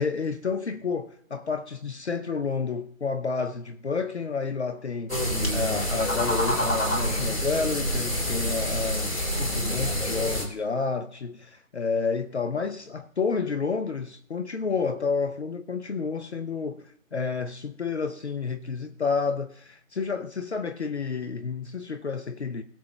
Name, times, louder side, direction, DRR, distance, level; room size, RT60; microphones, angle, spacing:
voice 1, 0.0-22.6, left 5 dB, 55° left, 0.7 m, -30 dB
sound 1, 5.1-10.5, equal, 70° left, 3.1 m, -27 dB
21.0 x 7.7 x 2.2 m
figure-of-eight pair, 150°, 41 cm